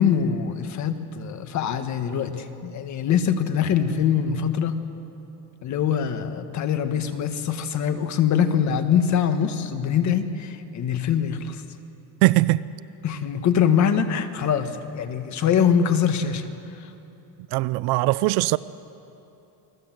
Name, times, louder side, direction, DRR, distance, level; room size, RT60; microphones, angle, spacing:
voice 1, 0.0-4.8 5.6-11.6 13.0-16.5 16.8-16.9, left 8 dB, 40° left, 1.6 m, -23 dB
voice 2, 12.2-12.6 17.5-18.6, right 19 dB, 55° right, 0.5 m, -20 dB
29.5 x 20.5 x 7.7 m
cardioid pair, 155°, 46 cm